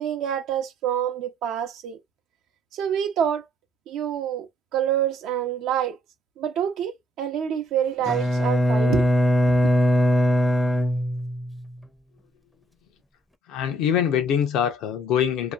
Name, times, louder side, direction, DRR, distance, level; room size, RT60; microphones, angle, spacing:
voice 1, 0.0-2.0 2.7-3.5 3.9-4.5 4.7-6.0 6.4-9.1, right 9 dB, 80° right, 0.6 m, -26 dB
Bowed string instrument, 8.1-11.6, equal, 5° left, 0.5 m, -21 dB
voice 2, 13.5-15.5, left 8 dB, 90° left, 0.7 m, -23 dB
2.9 x 2.2 x 2.4 m
cardioid pair, 110°, 0 cm